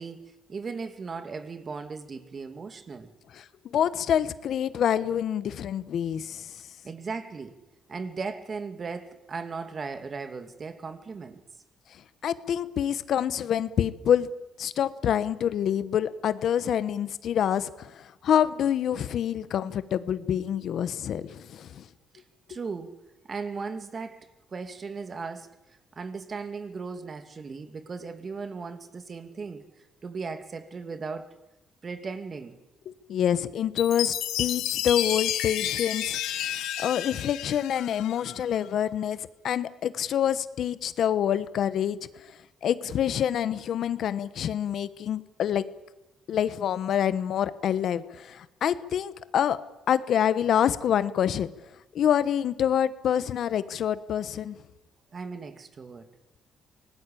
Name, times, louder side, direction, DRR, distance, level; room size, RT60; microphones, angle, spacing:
voice 1, 0.0-3.1 6.8-7.6 7.9-11.4 22.1-22.2 22.5-23.0 23.3-25.6 25.9-29.7 30.0-31.3 31.8-32.6 55.1-56.1, right 4 dB, 40° right, 2.4 m, -37 dB
voice 2, 3.7-6.5 12.2-14.3 14.6-21.8 32.9-36.2 36.8-42.0 42.6-45.6 46.3-49.6 49.9-51.5 51.9-54.6, left 9 dB, 70° left, 1.2 m, -26 dB
Chime, 33.8-38.4, left 12 dB, 90° left, 1.4 m, -31 dB
25.0 x 19.5 x 8.6 m
cardioid pair, 90°, 0 cm